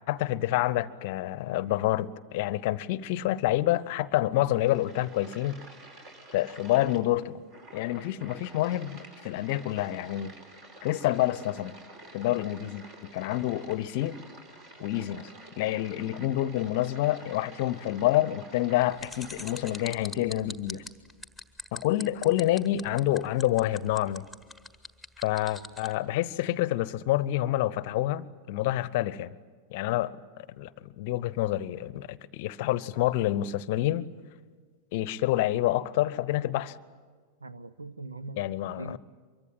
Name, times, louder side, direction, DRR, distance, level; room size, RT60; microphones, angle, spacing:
voice 1, 0.1-5.6 6.3-7.4 7.7-10.4 10.8-11.8 12.1-12.8 13.1-14.2 14.8-15.3 15.6-20.8 21.7-24.3 25.2-29.3 29.7-30.1 30.5-34.1 34.9-36.8 38.4-39.0, left 14 dB, 50° left, 0.8 m, -28 dB
sound 1, 4.3-19.9, right 2 dB, 45° right, 5.2 m, -49 dB
sound 2, 19.0-25.9, left 2 dB, ahead, 1.6 m, -41 dB
voice 2, 37.4-39.0, right 2 dB, 75° right, 0.9 m, -42 dB
24.5 x 23.5 x 9.1 m
figure-of-eight pair, 90°, 0 cm